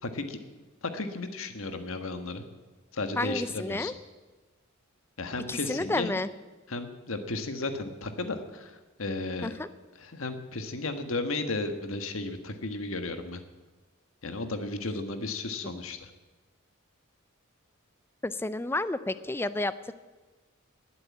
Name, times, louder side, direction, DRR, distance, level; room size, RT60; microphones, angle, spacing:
voice 1, 0.0-2.4 2.9-4.0 5.2-6.2 6.7-9.5 10.0-13.4 14.2-16.1, left 2 dB, 75° left, 8 dB, 1.4 m, -34 dB
voice 2, 3.2-3.9 5.5-6.3 9.4-9.7 18.2-19.9, left 2 dB, 10° left, 14 dB, 0.4 m, -31 dB
20.0 x 7.8 x 8.5 m, 1.3 s
head